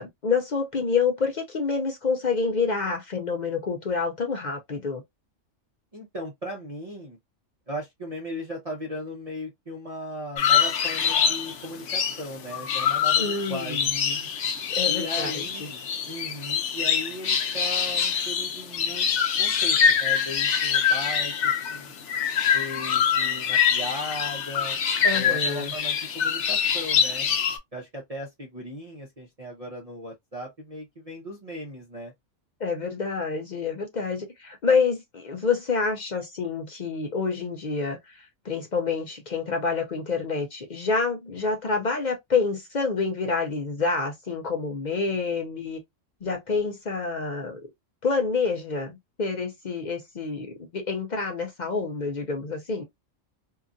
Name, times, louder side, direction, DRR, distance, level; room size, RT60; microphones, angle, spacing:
voice 1, 0.0-5.0 13.2-14.3 14.7-15.7 25.0-25.7 32.6-38.0 38.4-45.8 46.2-47.6 48.0-52.8, left 4 dB, 50° left, 0.6 m, -27 dB
voice 2, 5.9-7.2 7.7-14.0 14.9-19.1 19.4-21.9 22.5-24.8 25.1-27.3 27.7-32.1, equal, 35° right, 0.8 m, -37 dB
sound 1, 10.4-27.6, left 7 dB, 70° left, 0.9 m, -24 dB
2.8 x 2.4 x 2.5 m
omnidirectional pair, 1.3 m